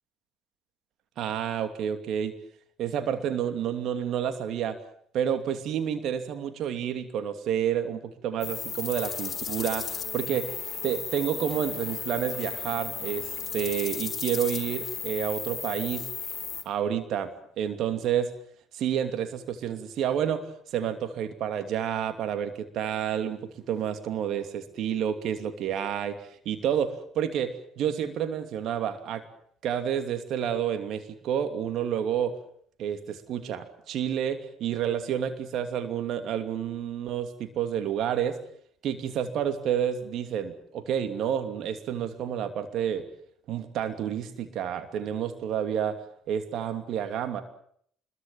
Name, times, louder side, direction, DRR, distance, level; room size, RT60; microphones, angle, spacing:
voice 1, 1.2-2.3 2.8-4.8 5.1-10.5 10.8-16.1 16.6-18.3 18.7-23.4 23.7-29.2 29.6-32.4 32.8-38.4 38.8-43.1 43.5-47.4, right 9 dB, 60° right, 8 dB, 2.8 m, -29 dB
sound 1, 8.4-16.6, left 6 dB, 40° left, 3.5 m, -35 dB
26.0 x 22.0 x 7.3 m, 0.64 s
hypercardioid pair, 55°, 0 cm